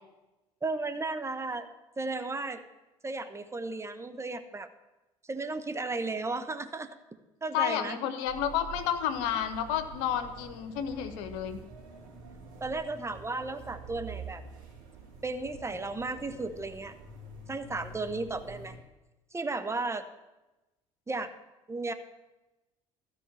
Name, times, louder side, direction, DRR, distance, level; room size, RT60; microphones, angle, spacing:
voice 1, 0.6-1.7 2.0-2.6 3.0-4.7 5.2-7.0 7.4-8.0 12.6-14.4 15.2-16.9 17.5-18.7 19.3-20.1 21.1-21.3 21.7-21.9, right 3 dB, 15° right, 9 dB, 1.0 m, -34 dB
voice 2, 7.5-11.6, left 9 dB, 65° left, 9 dB, 1.1 m, -31 dB
sound 1, 8.2-18.8, right 4 dB, 70° right, 3.3 m, -47 dB
13.0 x 4.9 x 8.9 m, 1.0 s
figure-of-eight pair, 60°, 17 cm